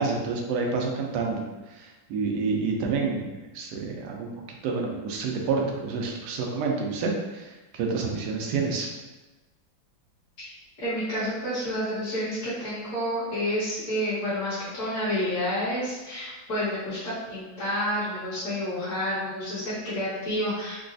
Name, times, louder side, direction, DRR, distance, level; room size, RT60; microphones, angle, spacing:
voice 1, 0.0-3.3 3.5-4.3 4.6-8.9, right 4 dB, 70° right, 0 dB, 1.0 m, -28 dB
voice 2, 10.8-20.7, equal, 45° left, -12 dB, 1.5 m, -29 dB
4.0 x 2.2 x 2.6 m, 1.2 s
omnidirectional pair, 2.1 m